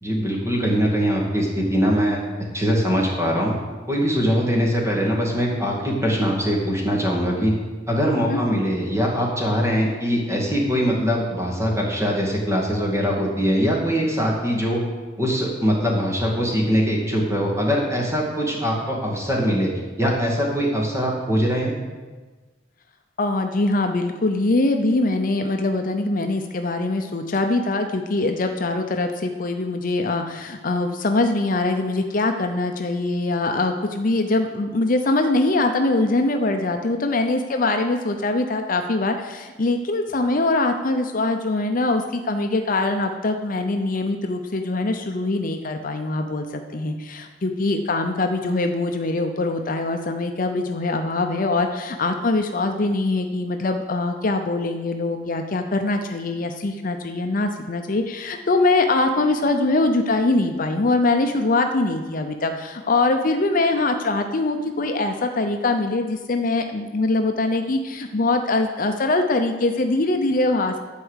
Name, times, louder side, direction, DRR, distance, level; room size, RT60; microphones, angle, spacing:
voice 1, 0.0-2.2 2.5-3.5 3.9-7.5 7.9-14.8 15.2-19.7 20.0-21.7, equal, 15° right, -2 dB, 2.1 m, -22 dB
voice 2, 8.3-8.6 23.2-70.8, left 2 dB, 45° left, 5 dB, 0.6 m, -23 dB
11.5 x 4.7 x 8.1 m, 1.3 s
head